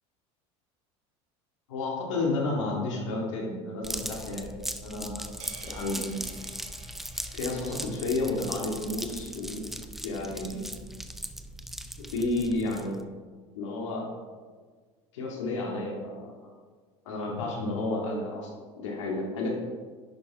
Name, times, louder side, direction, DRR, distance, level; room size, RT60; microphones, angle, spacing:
voice 1, 1.7-4.5 4.8-5.3 5.6-6.2 7.3-9.7 10.0-10.7 12.1-13.0 13.5-14.1 15.1-16.3 17.1-19.6, left 2 dB, 85° left, -1 dB, 2.1 m, -31 dB
sound 1, 3.8-13.0, right 1 dB, ahead, 0.5 m, -39 dB
sound 2, 5.4-9.8, right 5 dB, 45° right, 1.2 m, -52 dB
10.5 x 5.9 x 3.6 m, 1.5 s
supercardioid pair, 95°, 15 cm